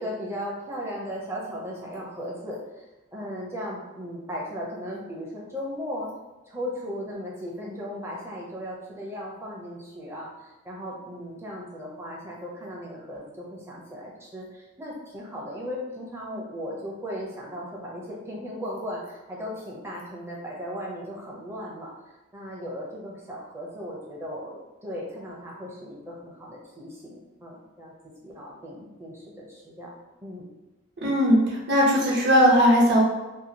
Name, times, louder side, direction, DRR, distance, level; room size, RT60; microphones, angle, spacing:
voice 1, 0.0-2.9 3.1-6.1 6.5-21.9 22.3-27.9 28.2-29.9 30.2-30.5, equal, 10° right, -4 dB, 0.6 m, -36 dB
voice 2, 31.0-33.0, equal, 55° right, -4 dB, 0.9 m, -19 dB
2.7 x 2.4 x 2.8 m, 1.1 s
head